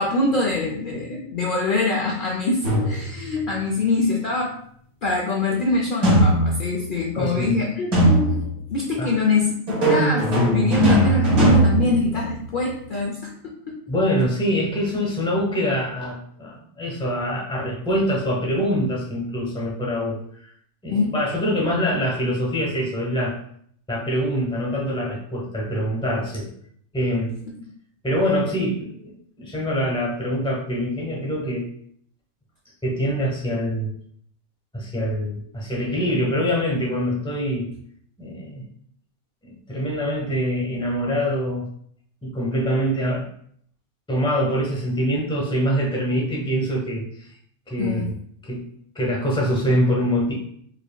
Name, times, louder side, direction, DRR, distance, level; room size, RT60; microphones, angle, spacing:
voice 1, 0.0-4.5 5.0-8.5 8.7-13.8 20.9-21.1 47.8-48.1, left 3 dB, 70° left, -2 dB, 0.5 m, -24 dB
sound 1, 2.6-3.3 6.0-6.9 7.9-8.6 9.7-12.6, right 1 dB, 75° right, 1.8 m, -19 dB
voice 2, 7.2-7.6 9.0-9.1 13.9-20.2 20.8-23.4 23.9-26.5 26.9-27.3 28.0-31.7 32.8-33.9 34.7-37.7 38.2-38.7 39.4-41.7 42.2-43.3 44.1-47.3 47.7-48.1 48.4-50.3, equal, 5° left, -3 dB, 0.6 m, -24 dB
4.8 x 2.9 x 2.2 m, 0.64 s
omnidirectional pair, 1.6 m